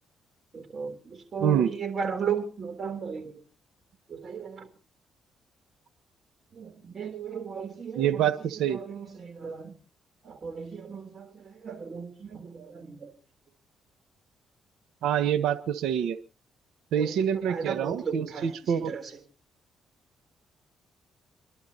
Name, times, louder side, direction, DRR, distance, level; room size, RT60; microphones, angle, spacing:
voice 1, 0.5-3.4 4.1-4.7 6.5-8.3 8.6-9.8 10.2-13.1 16.9-19.1, right 6 dB, 40° right, 6 dB, 3.5 m, -36 dB
voice 2, 1.4-1.7 7.9-8.8 15.0-16.2 16.9-18.9, right 9 dB, 85° right, 12 dB, 1.1 m, -26 dB
29.0 x 11.5 x 2.9 m, 0.33 s
cardioid pair, 90°, 0 cm